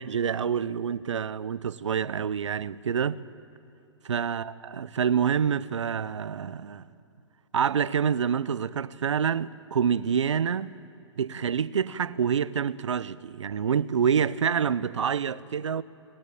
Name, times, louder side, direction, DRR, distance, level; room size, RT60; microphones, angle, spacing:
voice 1, 0.0-3.2 4.0-6.9 7.5-10.8 11.2-15.8, right 7 dB, 85° right, 0.8 m, -27 dB
27.5 x 19.5 x 8.6 m
hypercardioid pair, 140°, 15 cm